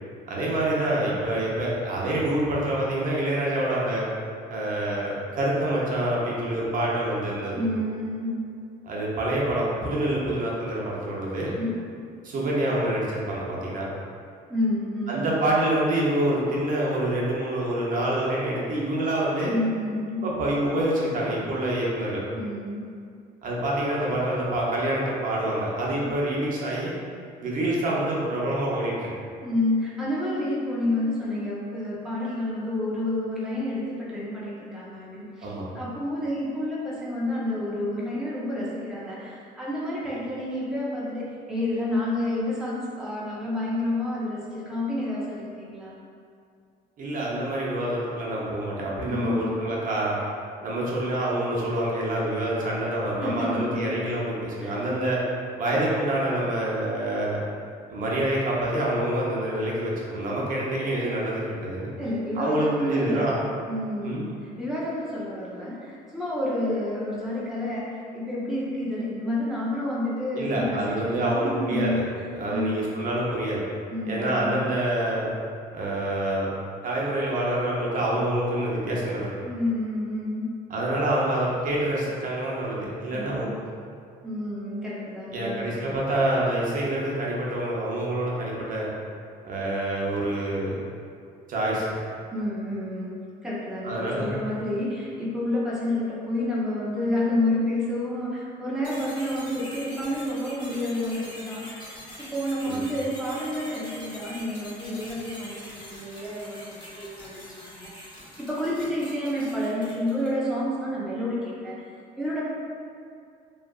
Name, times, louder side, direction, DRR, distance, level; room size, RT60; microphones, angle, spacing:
voice 1, 0.3-4.1 4.5-7.6 8.8-11.5 12.2-13.8 15.1-19.5 20.2-22.2 23.4-26.9 27.4-29.1 35.4-35.7 47.0-50.2 50.6-55.2 55.6-57.4 57.9-61.9 62.4-63.4 64.0-64.2 70.3-72.0 72.3-73.6 74.0-75.3 75.7-76.5 76.8-79.3 80.7-83.5 85.3-88.9 89.4-90.8 91.5-91.8 93.8-94.3 102.7-102.8, right 1 dB, 55° right, -5 dB, 0.6 m, -26 dB
voice 2, 7.5-8.4 11.6-11.8 14.5-15.2 19.4-20.2 22.3-22.9 29.4-45.9 49.0-49.6 53.2-53.8 54.6-54.9 62.0-63.4 63.7-72.0 72.5-72.9 73.9-74.7 79.4-80.5 83.1-83.5 84.2-85.7 92.3-93.1 93.4-107.9 108.4-111.8 112.2-112.4, left 1 dB, 5° right, -7 dB, 0.5 m, -29 dB
sound 1, 98.8-110.4, equal, 30° left, 0.9 m, -43 dB
2.7 x 2.3 x 2.2 m, 2.3 s
cardioid pair, 110°, 17 cm